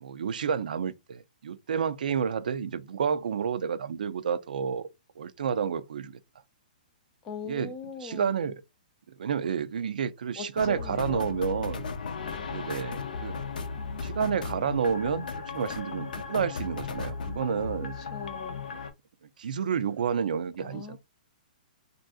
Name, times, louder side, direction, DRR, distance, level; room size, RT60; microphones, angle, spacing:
voice 1, 0.0-4.9 5.2-6.2 7.5-7.7 8.0-8.6 9.2-11.9 12.5-13.3 14.0-17.9 19.4-21.0, right 7 dB, 65° right, 0.3 m, -30 dB
voice 2, 7.2-8.5 10.4-11.3 18.0-18.7 20.6-21.0, left 5 dB, 10° left, 0.3 m, -40 dB
sound 1, 10.6-18.9, left 5 dB, 65° left, 0.5 m, -36 dB
3.4 x 2.5 x 2.3 m
hypercardioid pair, 180°, 5 cm